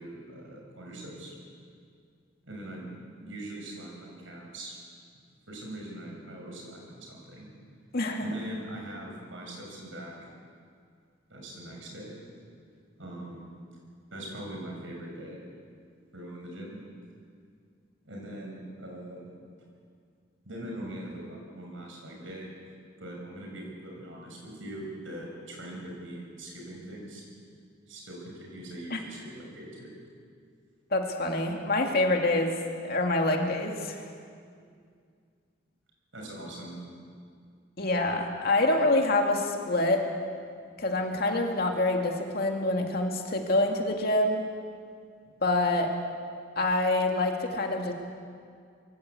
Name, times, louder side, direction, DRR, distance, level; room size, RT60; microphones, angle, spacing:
voice 1, 0.0-1.3 2.4-4.8 5.5-7.5 8.2-10.1 11.3-12.1 13.0-13.5 14.1-15.4 16.1-16.8 18.0-19.3 20.4-22.5 23.0-27.2 27.9-29.9 36.1-36.8 45.2-45.3, right 1 dB, 80° right, -1 dB, 6.8 m, -41 dB
voice 2, 7.9-8.3 28.9-29.0 30.9-32.6 32.8-34.0 37.8-40.1 40.8-44.4 45.4-45.9 46.6-47.9, left 2 dB, 50° left, 2 dB, 2.3 m, -26 dB
22.5 x 16.0 x 8.3 m, 2.2 s
head